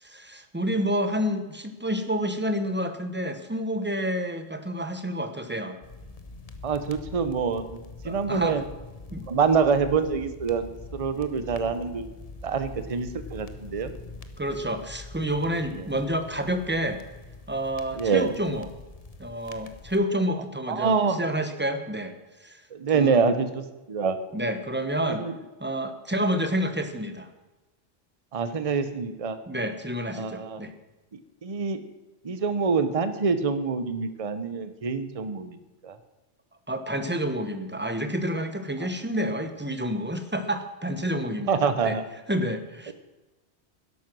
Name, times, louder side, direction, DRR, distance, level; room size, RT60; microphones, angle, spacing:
voice 1, 0.0-5.8 8.0-8.6 9.1-9.3 14.4-17.0 17.5-18.7 19.2-22.1 22.4-22.6 22.9-23.3 24.3-25.2 25.6-27.3 29.5-30.7 36.7-42.0 42.3-42.9, equal, 10° right, 8 dB, 1.1 m, -29 dB
sound 1, 5.8-20.0, left 3 dB, 35° left, 1.0 m, -44 dB
voice 2, 6.6-8.6 9.3-10.7 10.9-12.1 12.4-13.9 15.7-15.9 17.9-18.3 20.7-21.2 22.7-24.2 25.1-25.3 28.3-29.4 30.1-30.6 31.4-31.8 32.2-35.6 35.8-36.0 41.5-42.0 42.9-43.0, right 5 dB, 35° right, 11 dB, 0.9 m, -26 dB
12.5 x 11.0 x 6.2 m, 1.1 s
omnidirectional pair, 1.1 m